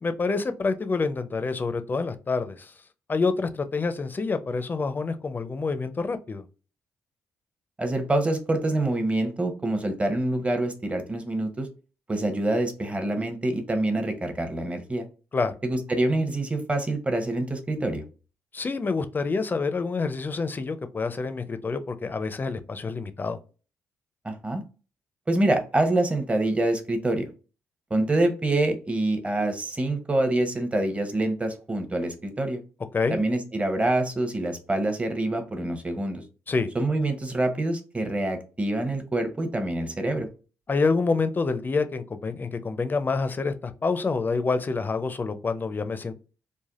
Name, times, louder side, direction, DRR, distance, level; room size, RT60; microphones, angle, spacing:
voice 1, 0.0-2.7 3.1-6.4 15.3-15.5 18.5-23.4 32.9-33.2 36.5-36.7 40.7-46.1, left 4 dB, 35° left, 10 dB, 0.5 m, -27 dB
voice 2, 7.8-11.7 12.1-15.0 15.6-18.0 24.2-24.6 25.3-27.3 27.9-32.6 33.1-36.2 36.7-40.3, right 2 dB, 20° right, 6 dB, 0.8 m, -26 dB
3.3 x 2.1 x 2.4 m, 0.35 s
supercardioid pair, 60°, 6 cm